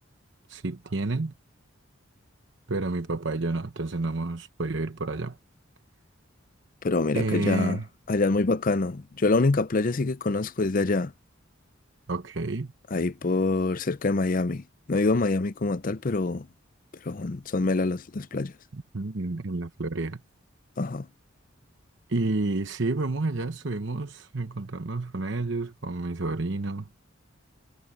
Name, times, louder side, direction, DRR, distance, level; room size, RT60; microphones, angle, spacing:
voice 1, 0.5-1.3 2.7-5.4 7.1-7.9 12.1-12.7 18.7-20.2 22.1-26.9, right 2 dB, 60° right, 1.0 m, -30 dB
voice 2, 6.8-7.8 8.1-11.1 12.9-16.5 17.0-18.5 20.8-21.1, left 3 dB, 40° left, 0.6 m, -25 dB
head